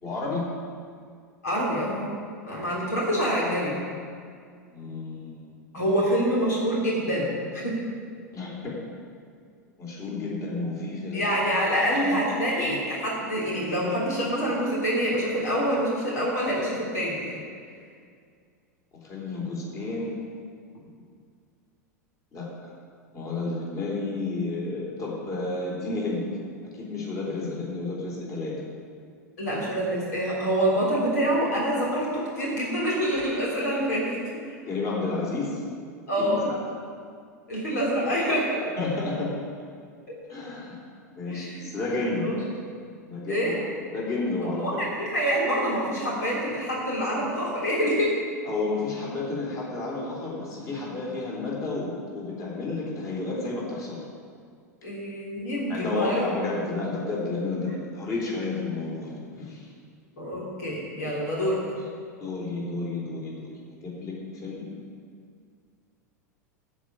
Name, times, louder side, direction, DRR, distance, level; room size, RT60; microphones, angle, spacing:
voice 1, 0.0-0.4 4.7-5.5 8.3-8.8 9.8-12.2 12.6-12.8 19.0-20.2 22.3-22.5 23.1-26.2 26.8-28.5 34.7-35.6 36.2-36.6 38.8-39.4 40.3-40.8 41.2-42.3 43.1-43.5 43.9-44.9 48.5-54.0 55.7-59.7 62.2-63.5 63.8-64.2 64.4-64.7, left 3 dB, 35° left, -4 dB, 3.8 m, -31 dB
voice 2, 1.4-2.1 2.4-3.7 5.7-7.8 11.1-17.4 29.4-34.2 36.1-36.4 37.5-38.6 41.2-41.7 42.2-42.4 43.3-43.6 44.6-48.2 54.8-56.3 60.2-61.6, equal, 70° left, -5 dB, 3.4 m, -26 dB
13.5 x 5.0 x 8.8 m, 2.2 s
figure-of-eight pair, 90°, 9 cm